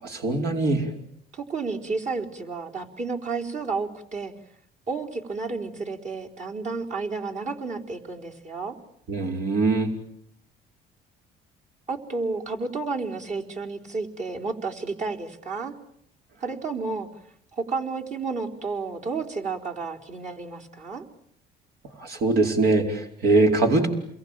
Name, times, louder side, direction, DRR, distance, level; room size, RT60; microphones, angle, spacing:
voice 1, 0.0-0.9 9.1-9.9 22.0-23.9, right 3 dB, 70° right, 3 dB, 4.9 m, -22 dB
voice 2, 1.3-4.3 4.9-8.8 11.9-15.7 16.4-17.1 17.5-21.0, right 4 dB, 45° right, 1 dB, 4.2 m, -31 dB
29.0 x 22.5 x 9.0 m, 0.73 s
cardioid pair, 110°, 17 cm